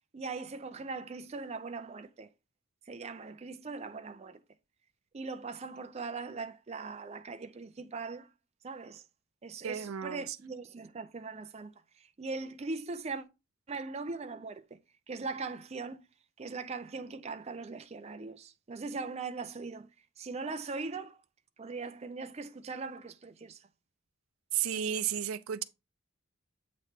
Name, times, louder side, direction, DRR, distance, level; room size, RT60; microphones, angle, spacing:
voice 1, 0.1-2.3 2.9-4.4 5.1-8.3 8.6-9.0 9.4-13.2 13.7-14.8 15.1-16.0 16.4-19.9 20.2-21.2 21.6-23.6, right 4 dB, 30° right, 0.5 m, -40 dB
voice 2, 9.6-10.4 24.5-25.6, right 9 dB, 90° right, 0.5 m, -33 dB
7.8 x 3.1 x 4.3 m
head